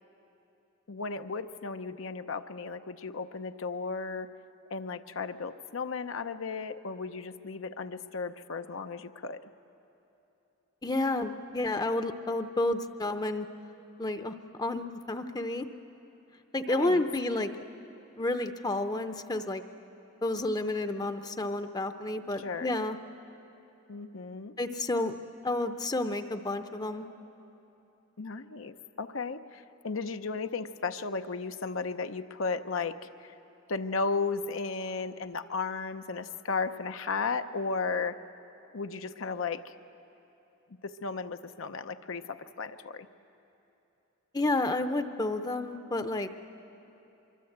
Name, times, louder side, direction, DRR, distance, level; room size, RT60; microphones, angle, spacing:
voice 1, 0.9-4.3 4.7-9.5 16.7-17.0 22.4-22.7 23.9-24.5 28.2-33.3 33.7-38.2 38.7-39.7 40.8-43.1, left 4 dB, 75° left, 9 dB, 0.7 m, -35 dB
voice 2, 10.8-13.5 14.0-15.7 16.5-17.5 18.2-19.6 20.2-23.0 24.6-25.2 25.4-27.1 44.3-46.3, left 2 dB, 20° left, 8 dB, 0.7 m, -30 dB
25.0 x 23.0 x 8.0 m, 2.9 s
head